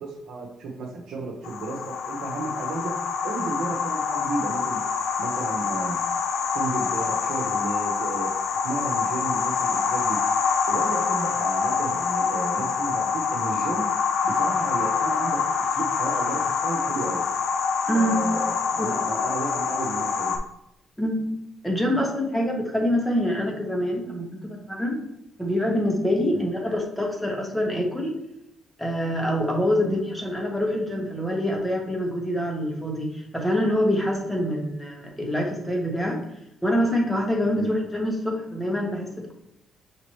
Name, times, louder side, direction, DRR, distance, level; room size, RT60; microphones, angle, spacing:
voice 1, 0.0-4.8 5.2-6.0 6.5-8.3 8.6-10.2 10.7-13.9 14.2-17.2 17.9-20.4 26.3-26.5 29.8-30.0 37.6-37.7, right 3 dB, 70° right, -3 dB, 0.9 m, -33 dB
sound 1, 1.4-20.4, left 5 dB, 75° left, 0.5 m, -26 dB
voice 2, 17.9-18.2 18.8-18.9 21.0-21.2 21.6-25.0 25.4-28.2 28.8-36.2 36.6-39.3, equal, 5° left, -1 dB, 1.3 m, -25 dB
6.1 x 2.8 x 3.1 m, 0.81 s
cardioid pair, 90°, 0 cm